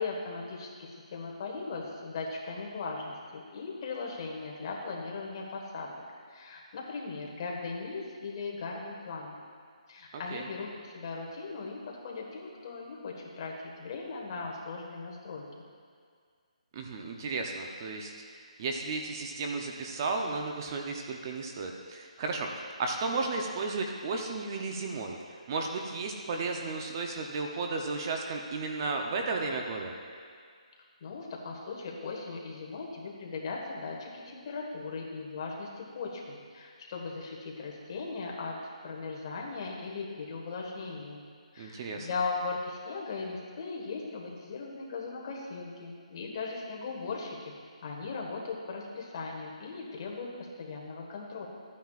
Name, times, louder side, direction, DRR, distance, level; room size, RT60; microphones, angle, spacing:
voice 1, 0.0-5.9 6.3-9.4 9.9-15.7 31.0-38.6 38.8-41.3 41.5-47.5 47.8-50.3 50.6-51.5, left 4 dB, 35° left, -2 dB, 1.5 m, -38 dB
voice 2, 16.7-18.1 18.6-25.2 25.5-29.9 41.6-42.1, right 3 dB, 30° right, 2 dB, 0.7 m, -34 dB
14.0 x 9.3 x 2.5 m, 2.1 s
hypercardioid pair, 165°, 4 cm